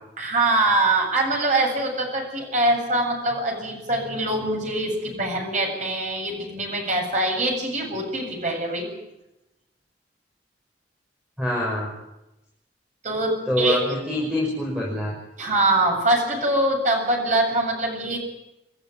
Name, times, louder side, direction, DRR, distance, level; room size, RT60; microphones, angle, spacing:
voice 1, 0.2-8.9 13.0-13.8 15.4-18.2, right 2 dB, 40° right, 2 dB, 7.7 m, -23 dB
voice 2, 11.4-11.9 13.5-15.1, left 1 dB, 5° right, -3 dB, 6.5 m, -25 dB
27.0 x 14.5 x 9.4 m, 0.91 s
head